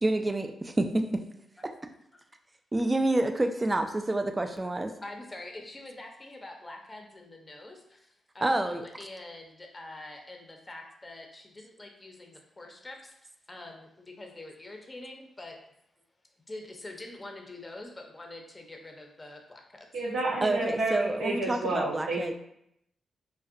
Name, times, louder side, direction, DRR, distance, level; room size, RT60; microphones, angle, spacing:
voice 1, 0.0-1.2 2.7-4.9 8.4-8.8 20.4-22.3, right 2 dB, 25° right, 6 dB, 0.3 m, -28 dB
voice 2, 5.0-13.1 13.5-15.6 16.5-19.9, left 2 dB, 25° left, 2 dB, 0.5 m, -45 dB
voice 3, 19.9-22.3, right 2 dB, 85° right, -5 dB, 0.7 m, -30 dB
2.5 x 2.1 x 2.4 m, 0.76 s
supercardioid pair, 50°, 0 cm